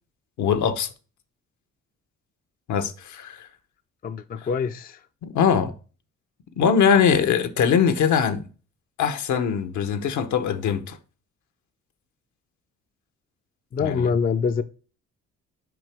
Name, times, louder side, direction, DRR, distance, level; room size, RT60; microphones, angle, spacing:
voice 1, 0.4-0.9 2.7-3.5 4.4-4.5 5.2-5.7 6.6-8.4 9.0-11.0 13.8-14.1, left 7 dB, 70° left, 0.9 m, -22 dB
voice 2, 4.0-5.0 13.7-14.6, left 6 dB, 30° left, 0.4 m, -25 dB
6.1 x 4.9 x 3.4 m
cardioid pair, 90°, 30 cm